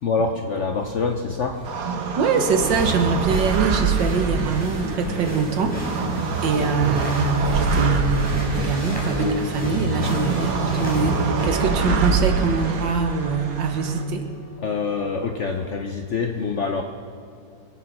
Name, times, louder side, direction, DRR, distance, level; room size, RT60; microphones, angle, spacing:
voice 1, 0.0-1.7 14.6-16.8, left 4 dB, 60° left, 4 dB, 0.8 m, -25 dB
sound 1, 0.7-15.8, left 1 dB, 25° right, 4.3 m, -31 dB
sound 2, 1.6-14.0, right 6 dB, 55° right, 1.3 m, -26 dB
voice 2, 2.2-14.3, right 5 dB, 80° right, 6 dB, 1.9 m, -23 dB
sound 3, 2.4-11.2, equal, 5° left, 4.1 m, -37 dB
23.5 x 8.2 x 5.9 m, 2.3 s
omnidirectional pair, 2.0 m